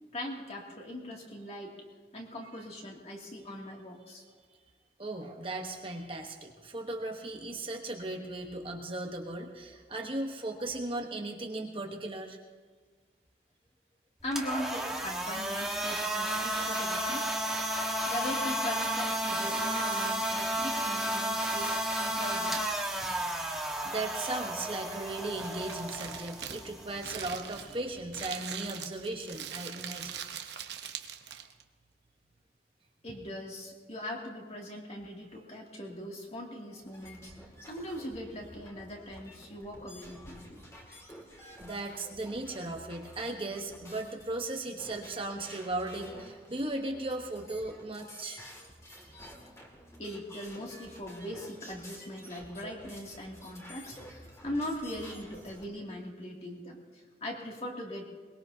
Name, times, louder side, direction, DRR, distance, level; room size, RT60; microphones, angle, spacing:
voice 1, 0.1-1.8 2.1-4.2 14.2-17.3 18.1-22.6 33.0-37.3 37.6-40.6 50.0-58.0, left 1 dB, 35° left, -1 dB, 2.5 m, -40 dB
voice 2, 5.0-12.4 23.8-30.1 35.3-35.4 41.6-48.4 53.6-53.7, right 2 dB, 30° right, 2 dB, 1.1 m, -37 dB
sound 1, 14.2-28.3, right 1 dB, 5° right, 1.4 m, -33 dB
Crumpling crinkling, 24.8-31.6, right 8 dB, 70° right, 1.0 m, -42 dB
sound 2, 36.8-55.7, equal, 15° left, 2.2 m, -51 dB
22.5 x 21.0 x 2.8 m, 1.5 s
head